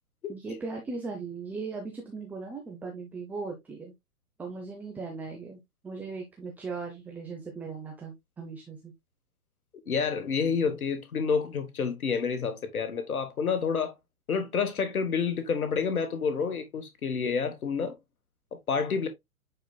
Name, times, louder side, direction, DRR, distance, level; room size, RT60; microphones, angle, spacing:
voice 1, 0.3-3.9 4.4-8.9, right 4 dB, 5° right, 0.6 m, -38 dB
voice 2, 9.9-13.9 14.3-18.0 18.7-19.1, left 5 dB, 75° left, 1.3 m, -29 dB
9.2 x 4.5 x 2.3 m
figure-of-eight pair, 120°, 44 cm